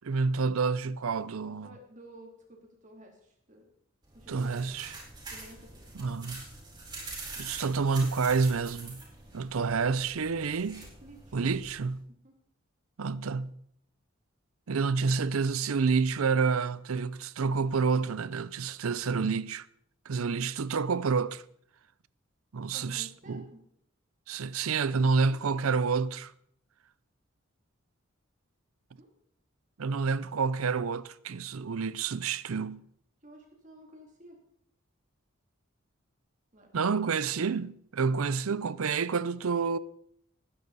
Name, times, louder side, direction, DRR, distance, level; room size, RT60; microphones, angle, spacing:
voice 1, 0.0-1.7 4.3-4.9 5.9-6.4 7.4-9.0 9.3-10.9 11.3-12.0 13.0-13.5 14.7-19.7 20.1-21.4 22.5-23.4 24.3-26.3 29.8-32.8 36.7-39.8, right 5 dB, 90° right, 0.6 m, -29 dB
voice 2, 1.5-3.7 4.1-4.8 5.3-6.2 11.0-11.4 12.2-12.3 22.7-23.6 24.9-25.8 29.0-29.1 33.2-34.4 36.5-36.7 38.5-38.6, right 1 dB, 35° right, 2.9 m, -52 dB
sound 1, 4.0-11.9, right 3 dB, 20° right, 4.6 m, -45 dB
19.5 x 10.0 x 4.1 m
head